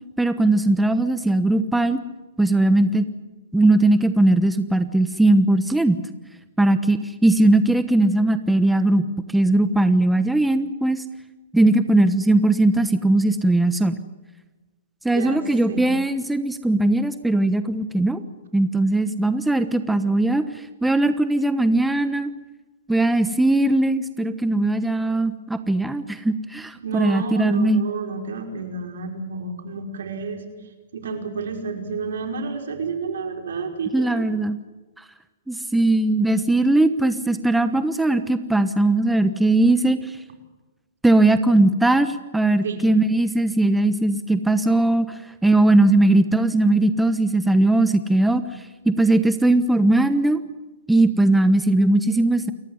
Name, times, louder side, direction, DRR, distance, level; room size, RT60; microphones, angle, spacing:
voice 1, 0.2-2.0 2.4-3.1 3.5-6.0 6.6-9.1 9.3-11.0 11.5-14.0 15.0-18.2 18.5-22.3 22.9-27.8 33.9-34.6 35.5-40.2 41.0-48.4 48.8-50.4 50.9-52.5, right 2 dB, 5° right, 11 dB, 1.1 m, -19 dB
voice 2, 26.8-30.4 30.9-34.2 42.6-42.9, right 4 dB, 75° right, 4 dB, 5.3 m, -30 dB
29.0 x 14.5 x 9.7 m, 1.2 s
hypercardioid pair, 135°, 0 cm